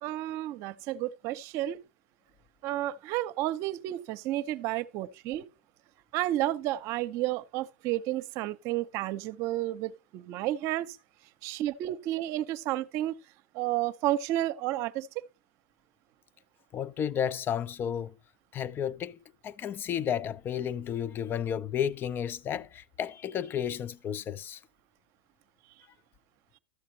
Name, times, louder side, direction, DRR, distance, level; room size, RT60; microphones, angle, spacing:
voice 1, 0.0-1.8 2.6-5.4 6.1-11.0 11.4-13.2 13.5-15.2, right 14 dB, 55° right, 0.7 m, -31 dB
voice 2, 16.7-18.1 18.5-19.2 19.4-24.6, left 9 dB, 35° left, 0.5 m, -32 dB
13.0 x 7.4 x 2.7 m
hypercardioid pair, 95°, 6 cm